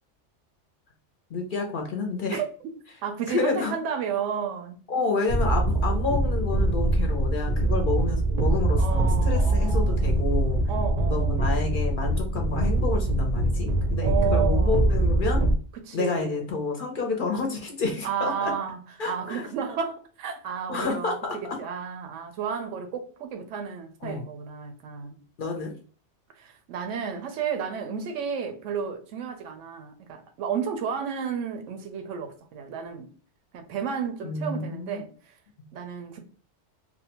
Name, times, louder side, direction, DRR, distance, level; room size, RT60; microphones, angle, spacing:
voice 1, 1.3-2.4 3.3-3.7 4.9-10.6 11.1-15.4 15.9-18.5 19.0-19.5 20.7-21.6 24.0-24.2 25.4-25.7 34.2-35.0 35.6-35.7, left 4 dB, 55° left, 0.6 m, -29 dB
voice 2, 3.0-4.8 8.8-10.1 10.7-11.5 14.0-14.9 15.8-16.5 18.0-18.8 19.1-21.2 21.6-25.2 26.4-33.1 33.5-35.1 35.7-36.2, right 7 dB, 85° right, 0.9 m, -32 dB
sound 1, 5.3-15.5, right 2 dB, 55° right, 0.4 m, -23 dB
2.6 x 2.1 x 2.8 m
omnidirectional pair, 1.2 m